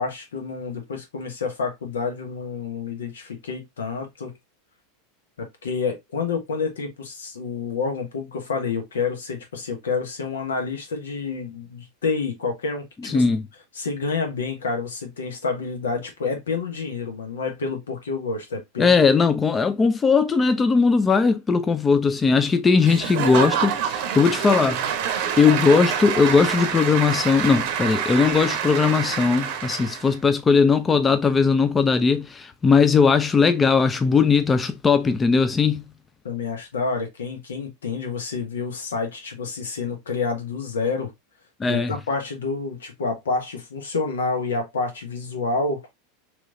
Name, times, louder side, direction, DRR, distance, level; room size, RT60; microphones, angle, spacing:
voice 1, 0.0-4.3 5.4-13.2 13.8-19.0 36.2-41.1 41.7-45.8, left 4 dB, 85° left, 1.0 m, -28 dB
voice 2, 13.0-13.4 18.8-24.8 25.4-35.8 41.6-41.9, left 5 dB, 20° left, 0.4 m, -19 dB
Applause / Crowd, 22.8-30.1, right 8 dB, 60° right, 0.7 m, -26 dB
3.1 x 3.0 x 2.5 m
hypercardioid pair, 95°, 0 cm